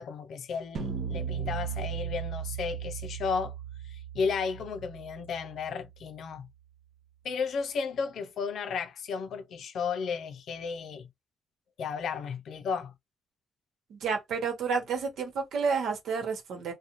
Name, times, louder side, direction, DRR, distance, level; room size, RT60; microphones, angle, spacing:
voice 1, 0.0-3.5 3.8-6.5 7.2-11.1 11.8-12.9, left 5 dB, 65° left, 0.5 m, -33 dB
sound 1, 0.8-6.1, right 8 dB, 55° right, 0.7 m, -37 dB
voice 2, 13.9-16.7, right 5 dB, 75° right, 1.1 m, -30 dB
2.5 x 2.2 x 3.0 m
cardioid pair, 115°, 0 cm